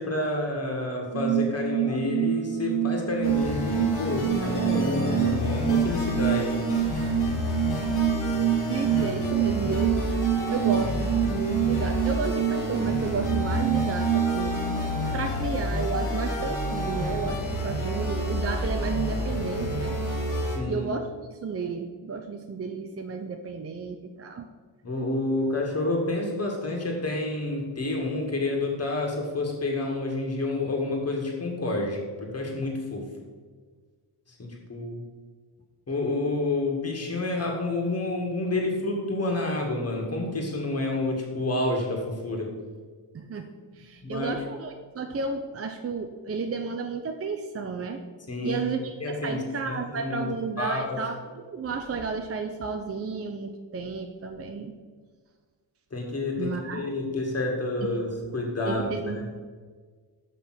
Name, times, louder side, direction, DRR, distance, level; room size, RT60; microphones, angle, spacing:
voice 1, 0.0-6.6 20.5-20.9 24.8-33.0 34.4-35.0 35.9-42.5 44.0-44.3 48.3-48.6 49.0-49.4 49.7-50.3 50.6-51.0 55.9-59.2, left 2 dB, 30° left, 0 dB, 1.9 m, -29 dB
sound 1, 1.1-15.5, right 11 dB, 90° right, 0.9 m, -27 dB
sound 2, 3.2-20.6, left 1 dB, 90° left, 2.3 m, -29 dB
voice 2, 8.7-10.0 10.5-14.6 15.1-19.9 20.7-24.5 43.1-48.0 48.4-54.7 56.4-56.9 57.8-57.9 58.7-59.3, right 4 dB, 30° right, 5 dB, 0.6 m, -32 dB
sound 3, 16.9-20.1, right 1 dB, 50° right, 1.6 m, -42 dB
6.6 x 5.4 x 5.9 m, 1.5 s
cardioid pair, 75°, 50 cm